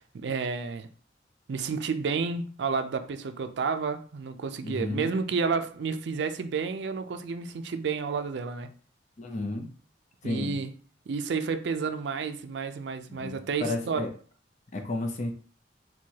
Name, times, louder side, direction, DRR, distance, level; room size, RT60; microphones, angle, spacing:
voice 1, 0.1-0.9 1.5-8.7 10.2-10.7 11.1-14.0, right 5 dB, 70° right, 0.4 m, -30 dB
voice 2, 4.6-5.1 9.2-9.7 10.2-10.6 13.1-14.1 14.7-15.3, left 2 dB, 40° left, 0.6 m, -32 dB
4.5 x 2.3 x 2.8 m
head